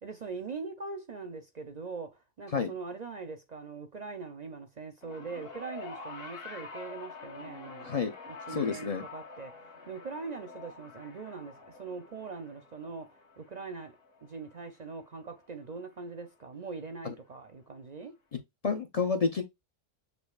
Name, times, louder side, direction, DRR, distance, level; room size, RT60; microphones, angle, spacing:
voice 1, 0.0-7.9 8.3-18.2, right 4 dB, 45° right, 0.6 m, -42 dB
sound 1, 5.0-15.5 16.5-16.6, left 4 dB, 55° left, 1.3 m, -47 dB
voice 2, 7.8-8.1 8.5-9.0 17.0-17.1 18.6-19.4, left 5 dB, 40° left, 0.6 m, -29 dB
6.8 x 2.6 x 2.3 m
omnidirectional pair, 1.2 m